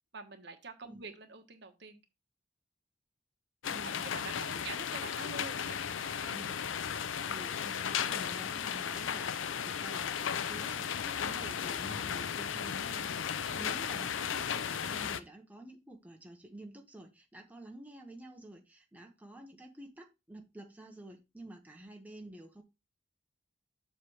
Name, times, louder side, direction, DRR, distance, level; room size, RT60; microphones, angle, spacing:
voice 1, 0.1-2.0 3.8-6.4 6.9-7.1 13.5-13.6, right 4 dB, 65° right, 6 dB, 1.2 m, -47 dB
sound 1, 3.6-15.2, left 8 dB, 90° left, 0.5 m, -35 dB
voice 2, 3.7-4.7 6.3-22.6, right 1 dB, 10° right, 2 dB, 1.0 m, -50 dB
7.3 x 3.3 x 6.3 m, 0.24 s
head